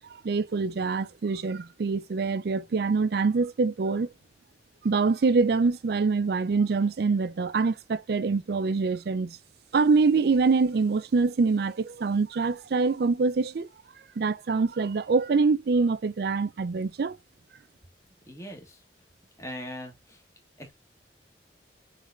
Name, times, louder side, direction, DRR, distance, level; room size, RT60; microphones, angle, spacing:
voice 1, 0.2-4.1 4.8-9.4 9.7-13.7 14.2-17.2, right 4 dB, 60° right, 0.4 m, -25 dB
voice 2, 18.3-18.8 19.4-20.2 20.6-20.7, equal, 15° left, 1.4 m, -40 dB
6.6 x 3.3 x 2.4 m
head